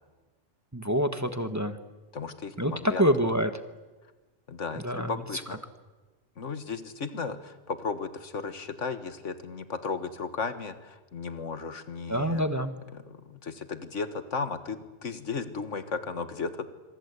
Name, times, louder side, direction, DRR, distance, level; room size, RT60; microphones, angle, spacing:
voice 1, 0.7-1.8 2.6-3.5 4.7-5.1 12.1-12.7, equal, 15° right, 9 dB, 1.2 m, -26 dB
voice 2, 2.1-3.0 4.5-5.6 6.4-12.4 12.9-16.7, left 5 dB, 85° left, 11 dB, 1.9 m, -35 dB
26.5 x 24.0 x 8.3 m, 1.3 s
omnidirectional pair, 1.2 m